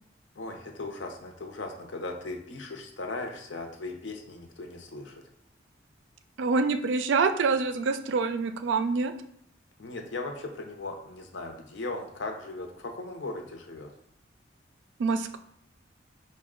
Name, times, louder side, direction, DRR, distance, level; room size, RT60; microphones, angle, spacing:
voice 1, 0.4-5.2 9.8-13.9, left 2 dB, 80° left, 3 dB, 0.7 m, -38 dB
voice 2, 6.4-9.1 15.0-15.4, right 4 dB, 80° right, 9 dB, 0.4 m, -26 dB
5.0 x 2.2 x 3.7 m, 0.72 s
head